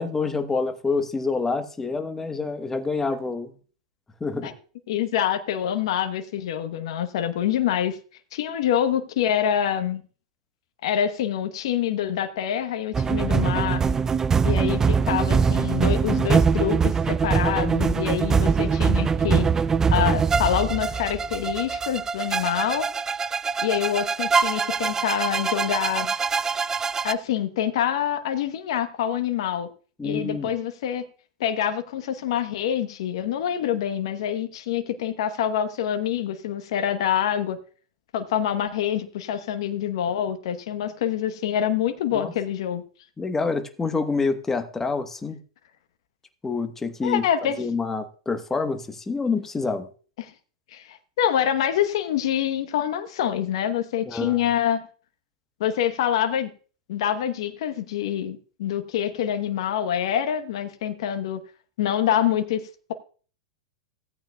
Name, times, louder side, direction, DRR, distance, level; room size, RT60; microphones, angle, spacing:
voice 1, 0.0-3.5 4.2-4.5 30.0-30.5 42.1-42.3 43.2-45.4 46.4-47.2 47.6-49.9 54.1-54.4, left 4 dB, 15° left, 8 dB, 1.1 m, -27 dB
voice 2, 4.9-8.0 8.3-10.0 10.8-13.8 14.4-19.5 19.9-22.9 23.6-26.1 27.0-29.7 30.0-31.0 31.4-37.6 38.1-42.8 47.0-47.6 50.2-50.3 50.7-54.8 55.6-56.5 56.9-61.4 61.8-62.9, left 10 dB, 65° left, 8 dB, 1.0 m, -26 dB
sound 1, 12.9-27.1, right 5 dB, 15° right, 0.3 m, -23 dB
17.0 x 8.9 x 2.3 m, 0.40 s
hypercardioid pair, 110°, 3 cm